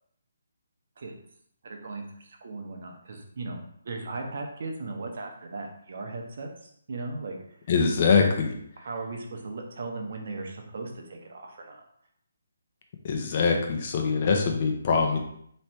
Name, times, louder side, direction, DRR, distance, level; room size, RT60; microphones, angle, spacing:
voice 1, 1.6-7.4 8.8-11.8, right 3 dB, 55° right, 2 dB, 1.0 m, -37 dB
voice 2, 7.7-8.5 13.0-15.2, left 5 dB, 40° left, 2 dB, 0.9 m, -23 dB
3.2 x 3.2 x 4.4 m, 0.68 s
figure-of-eight pair, 150°, 0 cm